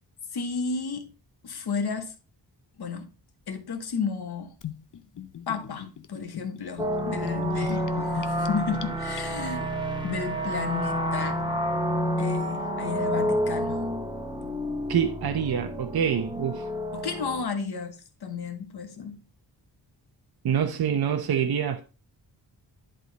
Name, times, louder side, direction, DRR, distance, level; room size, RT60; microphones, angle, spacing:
voice 1, 0.3-1.1 1.4-2.1 2.8-3.1 3.5-4.6 5.5-9.6 10.0-11.4 12.2-13.9 16.9-19.2, left 5 dB, 65° left, 1.3 m, -33 dB
Gurgling / Bathtub (filling or washing), 4.6-9.7, left 10 dB, 50° left, 0.6 m, -41 dB
sound 1, 6.8-17.5, equal, 10° right, 0.9 m, -29 dB
voice 2, 14.9-16.7 20.4-21.8, right 8 dB, 60° right, 0.8 m, -26 dB
11.0 x 3.8 x 4.0 m
wide cardioid pair, 175°, 42 cm